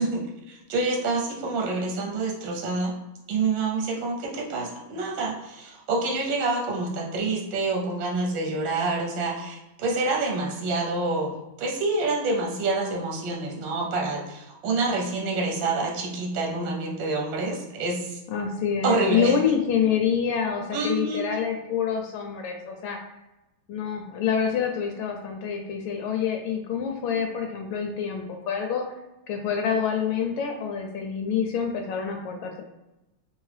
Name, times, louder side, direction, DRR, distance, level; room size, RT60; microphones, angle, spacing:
voice 1, 0.0-2.9 3.3-18.2 18.8-19.3 20.7-21.3, right 3 dB, 70° right, 0 dB, 1.3 m, -27 dB
voice 2, 18.3-23.0 23.7-28.8 29.3-32.6, left 7 dB, 75° left, 3 dB, 1.2 m, -27 dB
3.5 x 2.9 x 3.2 m, 0.98 s
omnidirectional pair, 2.3 m